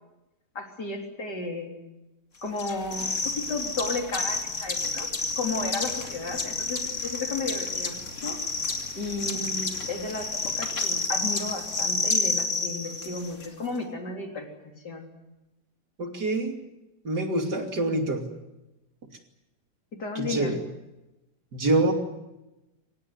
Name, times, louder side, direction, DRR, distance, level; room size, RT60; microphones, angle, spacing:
voice 1, 0.6-1.7 2.4-5.1 5.4-8.4 8.9-14.5 14.8-15.0 19.9-20.5, left 3 dB, 90° left, 3 dB, 4.2 m, -33 dB
sound 1, 2.6-13.5, left 3 dB, 45° left, 2.6 m, -30 dB
voice 2, 16.0-16.6 17.0-18.2 20.1-20.6 21.5-21.9, right 2 dB, 80° right, 4 dB, 3.4 m, -26 dB
25.0 x 18.0 x 9.6 m, 0.99 s
omnidirectional pair, 1.7 m